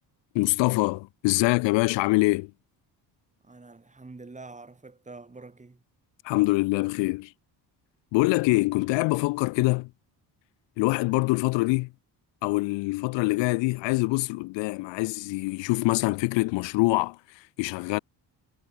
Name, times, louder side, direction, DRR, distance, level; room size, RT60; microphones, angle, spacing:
voice 1, 0.3-2.5 6.2-7.3 8.1-9.9 10.8-11.9 12.4-18.0, left 23 dB, 85° left, 0.5 m, -24 dB
voice 2, 3.4-5.8, right 3 dB, 15° right, 4.1 m, -46 dB
cardioid pair, 115°, 43 cm